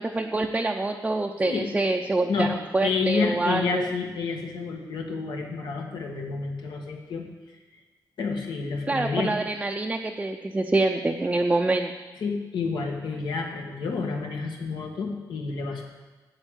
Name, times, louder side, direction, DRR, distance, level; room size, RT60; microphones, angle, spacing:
voice 1, 0.0-3.9 8.9-11.9, right 2 dB, 15° right, 2 dB, 0.5 m, -26 dB
voice 2, 2.8-7.2 8.2-9.3 12.2-15.8, left 4 dB, 85° left, 1 dB, 2.0 m, -29 dB
8.9 x 8.1 x 8.2 m, 1.2 s
wide cardioid pair, 155°, 8 cm